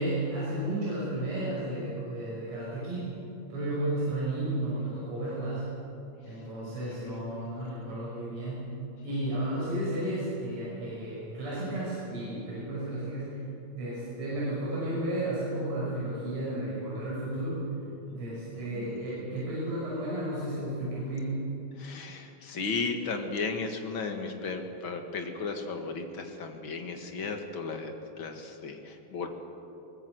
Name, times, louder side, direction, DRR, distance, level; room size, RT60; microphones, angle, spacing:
voice 1, 0.0-3.2 3.5-5.6 6.2-8.7 9.0-13.4 13.7-17.6 18.1-21.5, right 1 dB, 40° right, -8 dB, 7.0 m, -33 dB
voice 2, 18.7-19.0 21.8-29.3, left 4 dB, 45° left, 5 dB, 2.0 m, -35 dB
22.0 x 19.5 x 8.0 m, 2.9 s
omnidirectional pair, 3.8 m